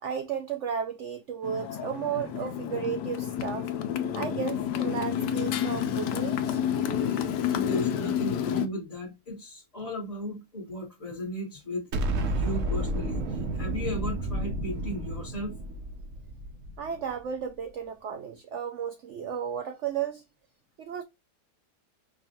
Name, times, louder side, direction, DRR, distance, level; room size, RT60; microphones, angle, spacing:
voice 1, 0.0-3.7 4.1-6.6 7.0-7.2 16.8-20.2 20.8-21.0, right 7 dB, 90° right, 0.6 m, -34 dB
Motorcycle, 1.4-8.7, left 9 dB, 85° left, 1.2 m, -29 dB
voice 2, 7.5-11.9 12.3-15.5, left 1 dB, 25° left, 1.2 m, -36 dB
Explosion, 11.9-17.1, right 1 dB, 60° right, 0.9 m, -31 dB
5.1 x 2.4 x 2.7 m
omnidirectional pair, 1.8 m